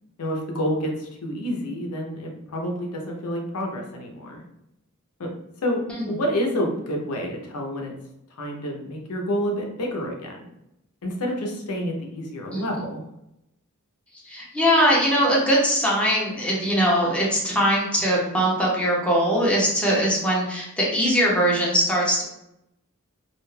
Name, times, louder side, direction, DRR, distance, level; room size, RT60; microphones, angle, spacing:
voice 1, 0.2-4.4 5.2-5.3 5.6-7.9 8.4-10.5 11.0-13.0, equal, 90° left, 1 dB, 0.6 m, -28 dB
voice 2, 14.2-22.2, equal, 5° left, -5 dB, 0.7 m, -21 dB
2.4 x 2.2 x 3.1 m, 0.84 s
head